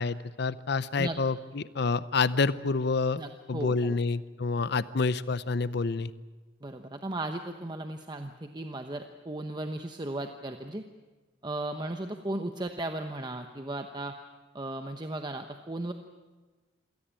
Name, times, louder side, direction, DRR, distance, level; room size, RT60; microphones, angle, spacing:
voice 1, 0.0-3.2 3.5-6.1, left 4 dB, 60° left, 16 dB, 0.7 m, -28 dB
voice 2, 3.1-4.0 6.6-10.8 11.4-14.2 14.5-15.9, right 1 dB, 20° right, 6 dB, 1.0 m, -36 dB
27.0 x 17.0 x 8.9 m, 1.3 s
head